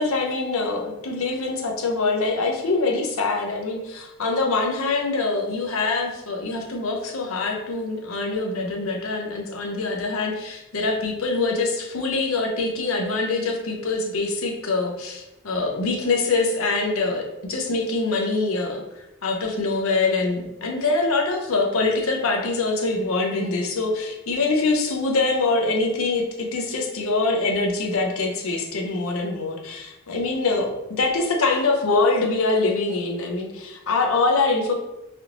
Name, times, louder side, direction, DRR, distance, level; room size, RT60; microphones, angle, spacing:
voice 1, 0.0-18.8 19.2-34.7, left 3 dB, 80° left, 1 dB, 0.6 m, -24 dB
3.4 x 2.5 x 2.9 m, 0.94 s
head